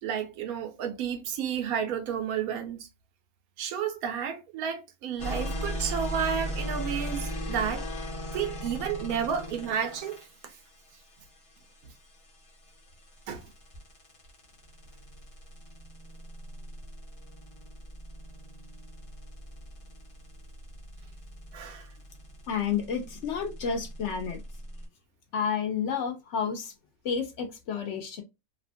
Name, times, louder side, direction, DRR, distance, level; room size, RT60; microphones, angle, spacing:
voice 1, 0.0-2.9 3.6-7.8 8.3-10.2 13.3-13.5 21.5-21.9, right 8 dB, 90° right, 1.1 m, -31 dB
sound 1, 5.2-24.9, equal, 30° left, 0.7 m, -39 dB
voice 2, 22.5-24.4 25.3-26.7 27.0-28.2, left 7 dB, 65° left, 0.8 m, -30 dB
2.8 x 2.1 x 2.5 m
omnidirectional pair, 1.5 m